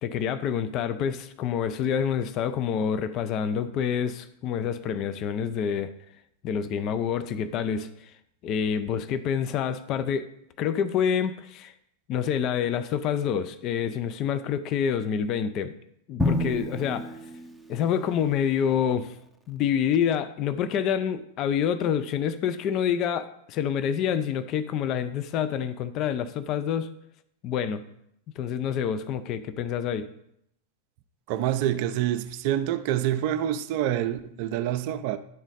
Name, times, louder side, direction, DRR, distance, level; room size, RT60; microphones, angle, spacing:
voice 1, 0.0-5.9 6.4-7.9 8.4-10.3 10.6-11.7 12.1-15.7 16.1-17.1 17.7-19.1 19.5-26.9 27.4-27.8 28.4-30.1, left 8 dB, 35° left, 0.4 m, -27 dB
Drum, 16.2-18.2, left 1 dB, ahead, 0.6 m, -29 dB
voice 2, 31.3-35.2, right 11 dB, 45° right, 0.4 m, -27 dB
10.5 x 4.0 x 4.0 m
figure-of-eight pair, 90°, 0 cm